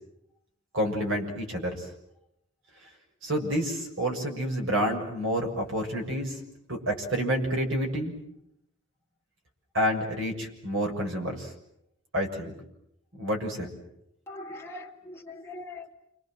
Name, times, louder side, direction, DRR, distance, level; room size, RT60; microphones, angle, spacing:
voice 1, 0.7-1.9 3.2-6.4 6.7-8.1 9.7-11.5 12.1-12.5 13.2-13.7, equal, 65° right, 2 dB, 6.8 m, -29 dB
voice 2, 14.3-15.9, left 2 dB, 10° left, -1 dB, 3.0 m, -41 dB
29.5 x 26.0 x 7.7 m, 0.79 s
head